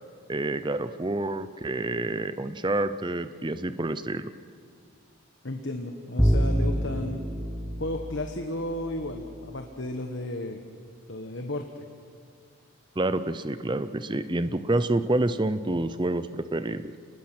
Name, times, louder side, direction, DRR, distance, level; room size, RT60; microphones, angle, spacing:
voice 1, 0.3-4.3 13.0-17.0, right 2 dB, 20° right, 12 dB, 0.6 m, -28 dB
voice 2, 5.4-7.2 7.8-10.6 11.1-11.8, left 1 dB, 55° left, 4 dB, 1.3 m, -33 dB
Bowed string instrument, 6.2-9.2, equal, ahead, 1.0 m, -27 dB
29.0 x 20.0 x 6.2 m, 2.2 s
head